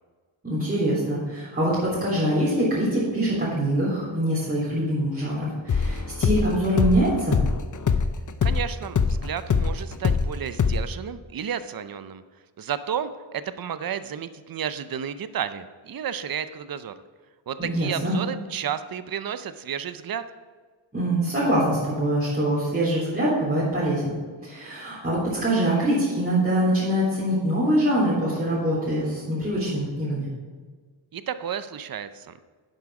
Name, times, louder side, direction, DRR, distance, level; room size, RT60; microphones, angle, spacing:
voice 1, 0.4-7.4 17.6-18.1 20.9-24.1 24.4-30.3, right 1 dB, 20° right, -10 dB, 3.5 m, -24 dB
sound 1, 5.7-10.3 10.6-10.8, left 6 dB, 40° left, 0.6 m, -23 dB
voice 2, 8.4-12.2 12.6-16.9 17.5-20.2 31.1-32.3, right 8 dB, 45° right, 12 dB, 0.6 m, -32 dB
11.0 x 7.8 x 4.8 m, 1.5 s
wide cardioid pair, 110°, 48 cm